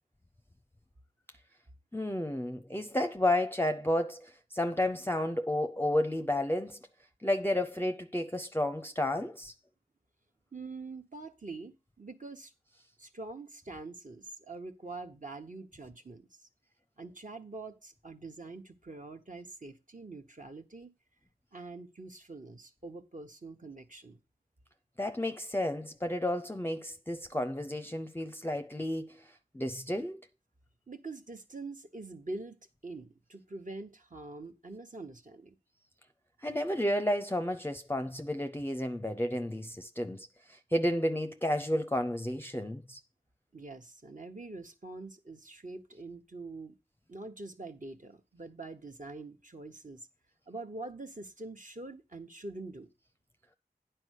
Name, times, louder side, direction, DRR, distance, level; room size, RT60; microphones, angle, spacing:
voice 1, 1.9-6.8 7.2-9.5 25.0-30.2 36.4-43.0, left 1 dB, 15° left, 0.5 m, -32 dB
voice 2, 10.5-12.5 13.0-16.5 17.0-20.9 21.5-24.2 30.9-35.6 43.5-46.8 47.1-50.1 50.5-52.9, right 3 dB, 55° right, 1.1 m, -45 dB
9.8 x 4.5 x 6.4 m
wide cardioid pair, 45°, 16 cm